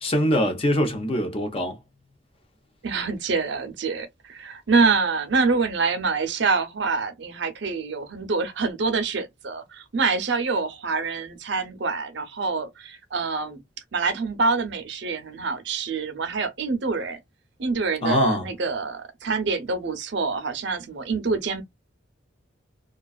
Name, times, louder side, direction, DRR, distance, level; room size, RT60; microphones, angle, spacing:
voice 1, 0.0-1.8 18.0-18.4, left 1 dB, 30° left, 0.6 m, -23 dB
voice 2, 2.8-13.6 13.9-17.2 17.6-21.6, right 4 dB, 60° right, 0.6 m, -26 dB
2.4 x 2.3 x 2.3 m
head